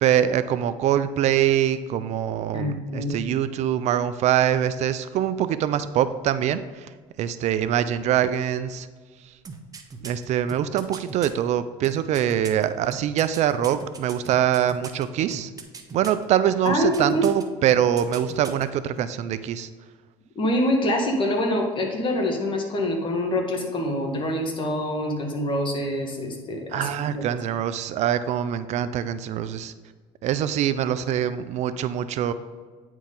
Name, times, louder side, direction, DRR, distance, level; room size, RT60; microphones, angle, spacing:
voice 1, 0.0-6.9 7.2-8.9 9.2-9.3 10.0-15.5 15.9-19.7 26.7-29.7 30.2-32.3, right 10 dB, 55° right, 13 dB, 0.4 m, -24 dB
voice 2, 2.5-3.1 16.6-17.2 20.3-26.8 27.1-27.2, left 1 dB, 40° left, 2 dB, 1.7 m, -25 dB
sound 1, 9.4-11.3 11.8-15.0 15.3-16.2 16.7-17.4 17.7-18.6 18.9-19.0, right 4 dB, 25° right, 0.9 m, -39 dB
9.4 x 4.6 x 3.8 m, 1.5 s
supercardioid pair, 95°, 14 cm